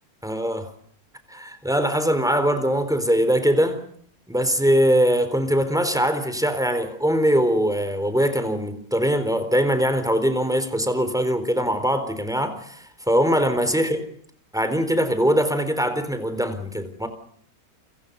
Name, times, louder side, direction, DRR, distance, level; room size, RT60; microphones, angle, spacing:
voice 1, 0.2-0.7 1.3-3.8 4.3-14.0 14.5-17.1, equal, ahead, 3.9 m, -22 dB
30.0 x 24.5 x 5.4 m
omnidirectional pair, 1.7 m